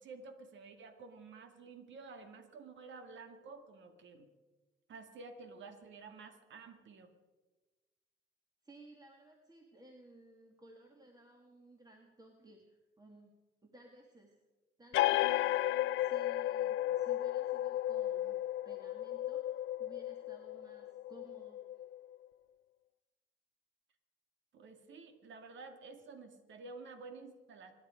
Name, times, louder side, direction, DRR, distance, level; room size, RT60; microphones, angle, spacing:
voice 1, 0.0-4.3 4.9-7.1 24.5-27.7, right 4 dB, 70° right, 7 dB, 2.2 m, -51 dB
voice 2, 8.6-13.3 13.6-14.3 14.8-21.8, right 2 dB, 20° right, 1 dB, 2.1 m, -59 dB
sound 1, 14.9-22.2, left 14 dB, 80° left, 0.5 m, -34 dB
26.0 x 11.0 x 5.1 m, 1.2 s
cardioid pair, 90°, 20 cm